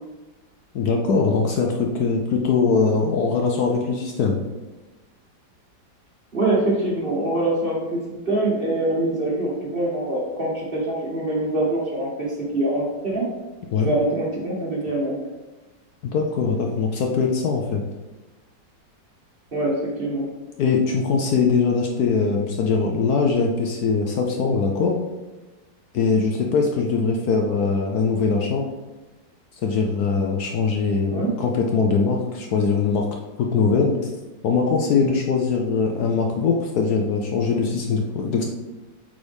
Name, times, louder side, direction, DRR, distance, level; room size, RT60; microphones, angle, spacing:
voice 1, 0.7-4.4 13.7-13.9 16.0-17.8 20.6-25.0 25.9-28.7 29.6-33.1 33.4-34.1 34.4-38.5, left 4 dB, 65° left, 1 dB, 1.0 m, -21 dB
voice 2, 6.3-12.3 12.5-13.2 13.8-15.2 19.5-20.3 31.1-31.3, right 1 dB, 35° right, -3 dB, 1.2 m, -24 dB
8.3 x 4.0 x 3.5 m, 1.1 s
omnidirectional pair, 2.0 m